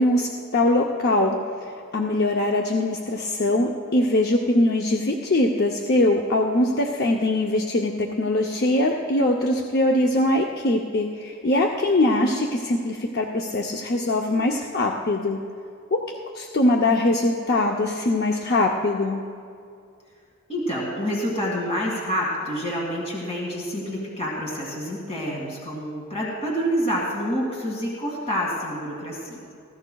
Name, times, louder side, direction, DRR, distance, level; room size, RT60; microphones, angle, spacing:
voice 1, 0.0-1.4 1.9-15.4 15.9-16.0 16.4-19.2, left 1 dB, 45° left, 1 dB, 0.6 m, -22 dB
voice 2, 20.5-29.4, equal, 30° left, -3 dB, 2.1 m, -27 dB
19.5 x 15.5 x 2.3 m, 2.4 s
head